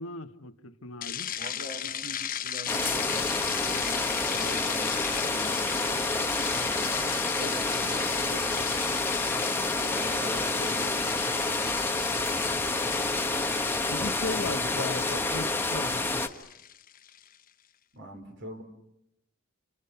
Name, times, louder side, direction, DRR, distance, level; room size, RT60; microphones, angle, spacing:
voice 1, 0.0-1.3 13.9-16.2, left 3 dB, 90° left, 1.7 m, -37 dB
sound 1, 1.0-17.3, left 10 dB, 45° left, 1.0 m, -37 dB
voice 2, 1.4-6.4 7.4-9.3 9.7-11.5 17.9-18.6, right 1 dB, 60° right, 4.5 m, -44 dB
sound 2, 2.7-16.3, left 2 dB, 10° left, 1.3 m, -28 dB
29.5 x 27.5 x 5.9 m
head